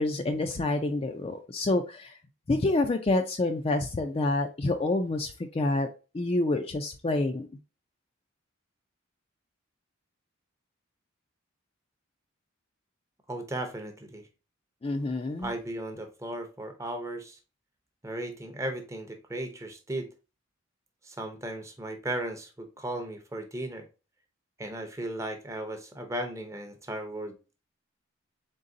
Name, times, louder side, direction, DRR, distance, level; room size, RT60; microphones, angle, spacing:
voice 1, 0.0-2.1 2.5-5.9 6.1-7.5 14.8-15.5, left 2 dB, 30° left, 6 dB, 0.4 m, -27 dB
voice 2, 13.3-14.3 15.4-17.4 18.0-20.1 21.0-23.9 24.6-27.4, right 1 dB, 15° right, 6 dB, 0.6 m, -36 dB
3.9 x 3.8 x 2.6 m, 0.31 s
head